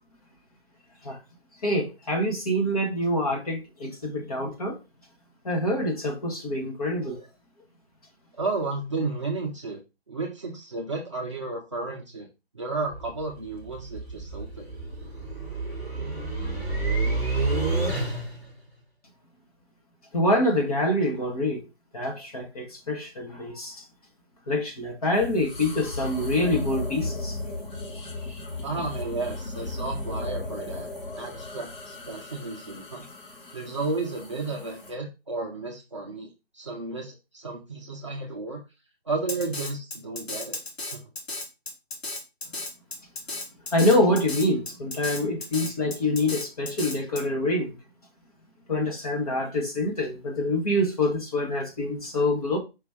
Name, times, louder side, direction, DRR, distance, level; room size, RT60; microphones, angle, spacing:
voice 1, 1.6-4.8 5.4-7.3 20.1-21.6 21.9-23.8 24.5-27.4 43.7-47.8 48.7-52.6, left 1 dB, 35° left, 1.3 m, -26 dB
voice 2, 8.4-9.8 10.1-12.3 12.5-14.7 28.6-30.9 31.2-33.0 33.5-36.3 36.5-38.6 39.1-40.6 40.9-41.0, right 3 dB, 30° right, 0.5 m, -33 dB
sound 1, 12.9-18.5, right 3 dB, 15° left, 1.3 m, -29 dB
sound 2, 25.1-34.9, left 2 dB, 55° left, 2.1 m, -36 dB
Drum kit, 39.3-47.2, left 2 dB, 85° left, 1.6 m, -35 dB
5.0 x 3.0 x 3.5 m
hypercardioid pair, 165°, 31 cm